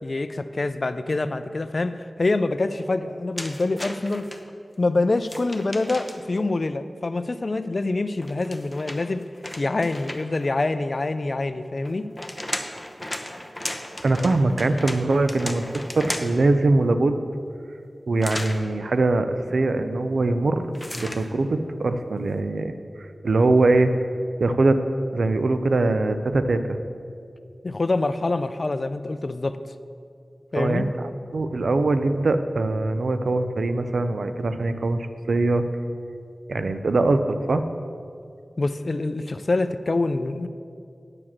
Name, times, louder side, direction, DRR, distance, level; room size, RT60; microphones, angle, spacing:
voice 1, 0.0-4.3 4.8-9.2 9.6-12.1 27.6-29.6 30.5-30.8 38.6-40.5, left 2 dB, 50° left, 11 dB, 0.4 m, -25 dB
sound 1, 3.4-4.4 5.2-6.4 8.2-10.5 11.9-16.5 18.2-18.6 20.7-21.3, left 1 dB, 15° left, 0.8 m, -35 dB
voice 2, 14.0-15.7 15.9-17.2 18.1-20.7 21.0-22.7 23.2-23.9 24.4-24.8 25.1-26.8 30.6-31.0 31.3-35.6 36.5-37.6, right 2 dB, 80° right, 9 dB, 0.5 m, -22 dB
9.7 x 4.9 x 7.4 m, 2.4 s
wide cardioid pair, 60°, 0 cm